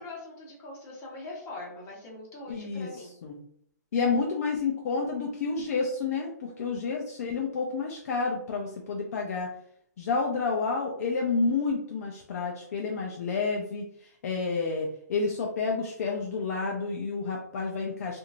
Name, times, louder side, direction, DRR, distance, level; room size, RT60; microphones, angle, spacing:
voice 1, 0.0-3.1, left 2 dB, 25° left, -4 dB, 1.2 m, -42 dB
voice 2, 2.5-2.9 3.2-3.4 3.9-9.5 10.0-13.9 14.2-18.2, left 4 dB, 60° left, 0 dB, 0.5 m, -29 dB
2.8 x 2.6 x 2.4 m, 0.67 s
hypercardioid pair, 145°, 10 cm